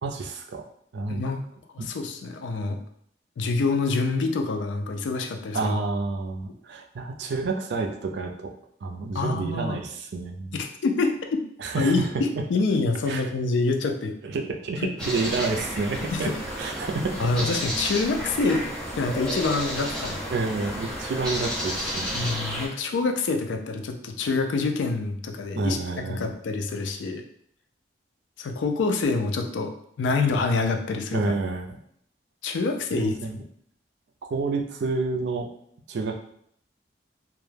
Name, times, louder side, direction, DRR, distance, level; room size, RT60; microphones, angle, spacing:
voice 1, 0.0-0.6 0.9-1.2 1.8-1.9 5.5-8.5 8.8-10.6 11.6-12.1 12.3-12.4 13.1-13.2 14.2-16.3 16.6-17.3 20.3-22.3 25.6-26.3 31.1-31.8 32.9-33.4 34.2-35.5 35.9-36.2, right 3 dB, 70° right, 3 dB, 0.4 m, -29 dB
voice 2, 1.1-1.4 1.7-2.8 3.4-5.7 9.1-9.8 10.5-11.1 11.8-14.1 14.8-14.9 15.9-16.4 17.2-18.6 19.0-20.2 22.1-25.8 26.1-27.2 28.4-29.7 30.0-31.2 32.4-33.4, left 3 dB, 85° left, 5 dB, 0.4 m, -26 dB
sound 1, 15.0-22.7, equal, 5° left, 0.6 m, -31 dB
2.2 x 2.1 x 3.1 m, 0.69 s
head